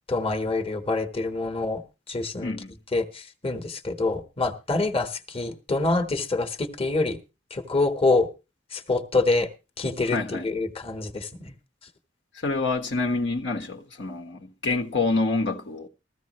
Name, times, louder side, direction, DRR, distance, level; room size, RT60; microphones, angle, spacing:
voice 1, 0.1-1.8 2.1-2.5 2.9-7.2 7.5-8.3 8.7-9.5 9.8-11.5, left 3 dB, 30° left, 1.3 m, -26 dB
voice 2, 2.4-2.7 10.1-10.5 12.4-15.9, left 3 dB, 75° left, 1.5 m, -27 dB
15.0 x 14.5 x 3.1 m
head